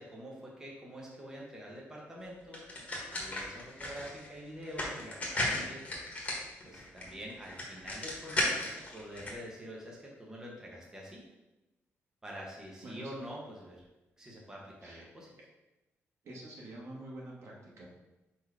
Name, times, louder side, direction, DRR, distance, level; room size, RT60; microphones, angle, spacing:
voice 1, 0.0-2.6 3.2-5.8 6.6-11.2 12.2-13.8 14.2-15.3, equal, 10° right, -3 dB, 1.1 m, -46 dB
sound 1, 2.5-9.3, left 1 dB, 30° left, 1.6 m, -36 dB
voice 2, 16.2-17.9, right 1 dB, 65° right, -3 dB, 1.7 m, -46 dB
5.1 x 4.5 x 4.8 m, 1.0 s
wide cardioid pair, 150°, 5 cm